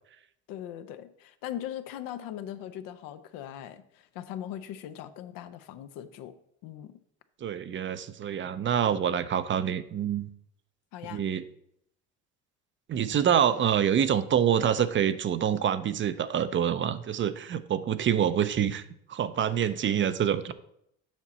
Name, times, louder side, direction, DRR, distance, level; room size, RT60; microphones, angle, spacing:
voice 1, 0.5-6.3 6.6-7.0 10.9-11.2, left 11 dB, 70° left, 11 dB, 0.7 m, -40 dB
voice 2, 7.4-10.3 11.1-11.4 12.9-18.8 19.1-20.5, right 9 dB, 35° right, 13 dB, 0.5 m, -26 dB
7.3 x 5.9 x 4.1 m, 0.73 s
supercardioid pair, 85°, 34 cm